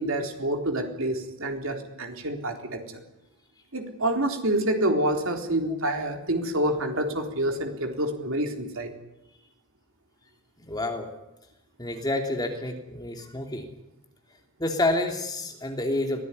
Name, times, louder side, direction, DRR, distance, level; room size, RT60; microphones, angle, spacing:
voice 1, 0.0-2.8 3.7-8.9, right 1 dB, 60° right, 4 dB, 3.8 m, -27 dB
voice 2, 10.6-11.1 11.8-13.7 14.6-16.2, left 2 dB, 20° left, 3 dB, 3.0 m, -28 dB
23.5 x 16.5 x 9.9 m, 0.91 s
head